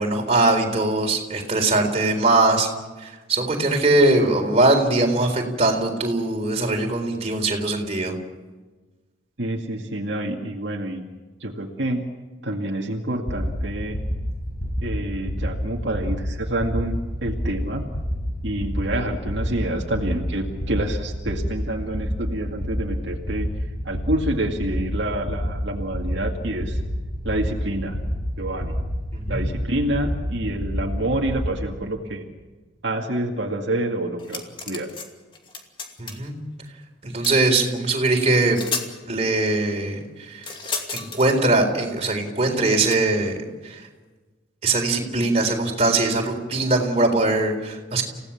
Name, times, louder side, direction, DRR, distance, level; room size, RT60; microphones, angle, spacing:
voice 1, 0.0-2.7 3.0-8.1 29.1-29.5 36.0-36.4 37.0-38.6 39.1-40.5 40.9-43.4 43.6-43.8 44.6-48.0, right 2 dB, 35° right, 2 dB, 4.0 m, -21 dB
voice 2, 9.4-11.0 11.4-12.0 12.4-14.0 14.8-17.8 18.4-23.5 23.8-26.8 27.2-28.0 28.4-28.8 29.3-32.2 32.8-34.9, right 1 dB, 65° right, 0 dB, 2.2 m, -27 dB
sound 1, 13.3-31.5, equal, 50° left, 8.0 m, -29 dB
sound 2, 34.2-35.1 35.3-36.3 37.2-37.4 38.2-38.3 38.5-38.9 40.4-41.3 42.9-43.0, left 4 dB, 25° left, 2.5 m, -32 dB
29.0 x 17.0 x 7.2 m, 1.3 s
head